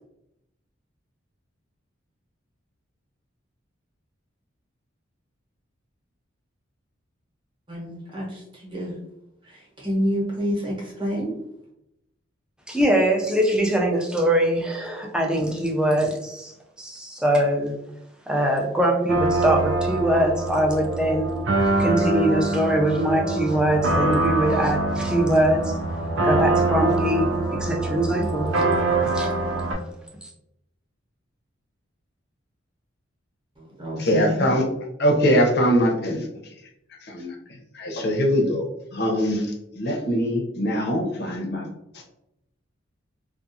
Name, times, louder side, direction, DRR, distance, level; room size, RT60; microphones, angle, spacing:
voice 1, 7.7-8.9 9.4-11.3 33.6-34.5, equal, 25° right, -5 dB, 0.9 m, -28 dB
voice 2, 12.7-16.5 16.8-17.8 18.3-21.3 21.8-25.8 26.2-28.6 29.0-29.3 29.7-29.8 30.2-30.3, right 1 dB, 5° right, 0 dB, 0.4 m, -22 dB
sound 1, 19.1-29.7, right 2 dB, 70° right, 0.5 m, -24 dB
voice 3, 34.0-34.6 35.0-36.3 37.0-37.3 37.7-38.7 38.9-41.7 41.9-42.0, equal, 55° left, 0 dB, 0.6 m, -22 dB
2.4 x 2.4 x 2.6 m, 0.84 s
head